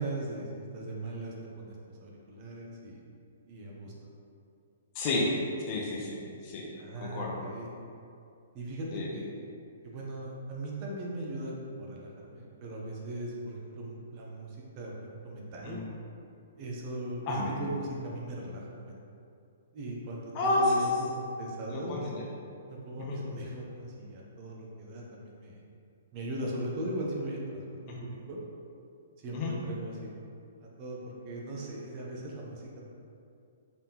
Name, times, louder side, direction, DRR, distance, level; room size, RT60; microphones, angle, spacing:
voice 1, 0.0-3.0 3.5-3.9 6.8-7.7 8.5-9.4 9.8-15.8 16.6-18.9 19.7-22.1 22.7-25.6 26.1-27.4 28.0-28.4 29.2-30.1 30.6-32.6, right 1 dB, 35° right, -3 dB, 0.7 m, -39 dB
voice 2, 5.0-5.3 5.7-6.7 7.0-7.4 8.9-9.1 15.6-15.8 17.3-17.5 20.3-20.8 21.7-22.2 23.0-23.2 27.9-28.0 29.3-29.5, left 2 dB, 35° left, -3 dB, 0.7 m, -30 dB
3.9 x 3.5 x 2.9 m, 2.5 s
hypercardioid pair, 145°, 0 cm